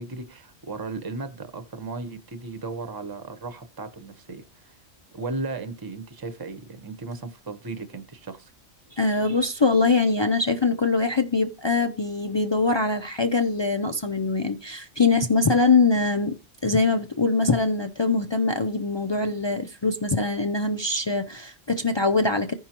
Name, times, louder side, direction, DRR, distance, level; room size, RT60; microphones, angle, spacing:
voice 1, 0.0-4.8 5.1-8.5, right 3 dB, 20° right, 0.8 m, -35 dB
voice 2, 8.9-16.4 16.6-22.5, left 3 dB, 50° left, 0.3 m, -23 dB
15.5 x 5.5 x 2.9 m
omnidirectional pair, 1.3 m